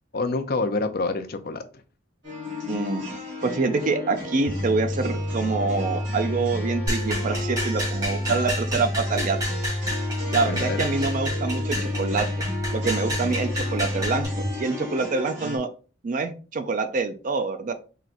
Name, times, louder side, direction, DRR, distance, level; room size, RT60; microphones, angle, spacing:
voice 1, 0.1-1.6 8.3-8.7 10.3-10.9, left 3 dB, 50° left, 7 dB, 0.5 m, -28 dB
sound 1, 2.2-15.6, left 2 dB, 55° right, 2.3 m, -35 dB
voice 2, 2.7-3.0 3.4-9.4 10.3-12.3 12.7-15.7 16.0-17.7, right 4 dB, 40° right, 8 dB, 0.4 m, -26 dB
sound 2, 4.5-14.5, left 1 dB, 75° right, 1.2 m, -29 dB
sound 3, 6.9-14.2, equal, 20° right, 2.3 m, -31 dB
4.3 x 3.9 x 2.5 m, 0.36 s
head